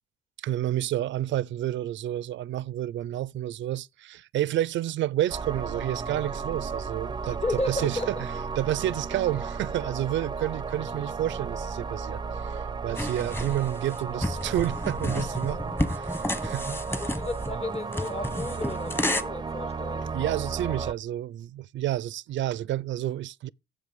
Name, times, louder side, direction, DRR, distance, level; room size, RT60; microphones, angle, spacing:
voice 1, 0.4-7.4 7.7-8.1 8.6-16.8 20.1-23.5, right 13 dB, 70° right, 0.5 m, -30 dB
sound 1, 5.3-20.9, right 5 dB, 20° right, 0.6 m, -34 dB
voice 2, 7.3-8.2 16.9-20.1, left 2 dB, 30° left, 1.4 m, -33 dB
sound 2, 13.0-19.2, left 1 dB, 10° left, 1.3 m, -31 dB
9.7 x 7.6 x 5.3 m
cardioid pair, 90°, 20 cm